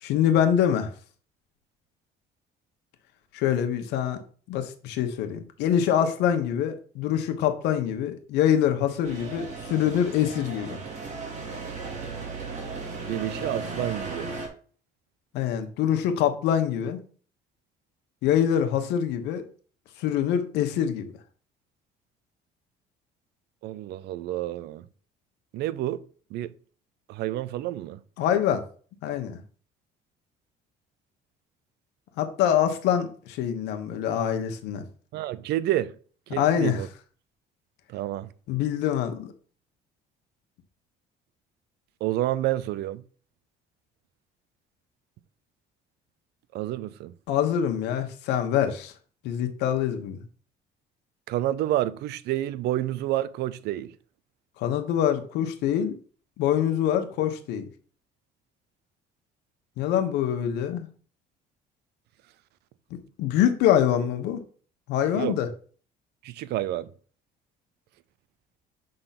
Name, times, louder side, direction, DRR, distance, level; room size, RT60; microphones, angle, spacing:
voice 1, 0.0-0.9 3.3-4.2 4.5-10.8 15.3-17.0 18.2-19.4 20.0-21.1 28.2-28.6 29.0-29.4 32.2-34.8 36.4-36.8 38.5-39.3 47.3-48.9 49.2-50.2 54.6-55.9 56.4-57.7 59.8-60.9 63.2-64.4 64.9-65.5, left 9 dB, 90° left, 1.1 m, -25 dB
sound 1, 9.0-14.5, right 3 dB, 45° right, 2.6 m, -36 dB
voice 2, 13.0-14.3 23.6-24.9 25.5-26.0 26.3-26.5 27.1-28.0 35.1-36.0 36.3-36.9 37.9-38.3 42.0-43.0 46.5-47.1 51.3-54.0 65.1-65.4 66.2-66.9, right 14 dB, 80° right, 0.6 m, -29 dB
6.7 x 3.9 x 5.8 m
cardioid pair, 110°, 17 cm